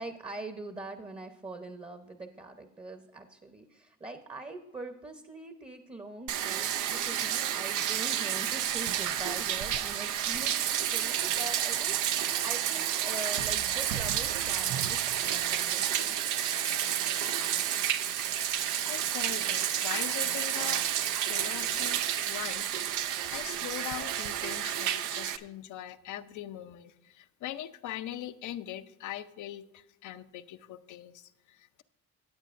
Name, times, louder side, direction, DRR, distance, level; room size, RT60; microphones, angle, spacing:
voice 1, 0.0-16.2, right 2 dB, 20° right, 7 dB, 0.8 m, -43 dB
Bathtub (filling or washing), 6.3-25.4, right 10 dB, 80° right, 0.6 m, -30 dB
voice 2, 18.8-20.9 21.2-31.8, left 12 dB, 75° left, 11 dB, 0.7 m, -41 dB
16.5 x 8.2 x 2.5 m, 0.92 s
cardioid pair, 90°, 30 cm